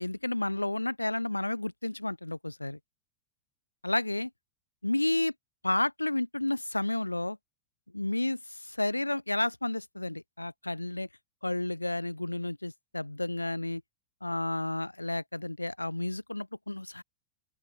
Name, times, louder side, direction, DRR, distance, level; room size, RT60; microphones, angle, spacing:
voice 1, 0.0-2.8 3.8-4.3 4.8-5.3 5.6-7.4 7.9-11.1 11.4-13.8 14.2-17.0, left 1 dB, 85° left, 1.8 m, -31 dB
open air
figure-of-eight pair, 90°, 0 cm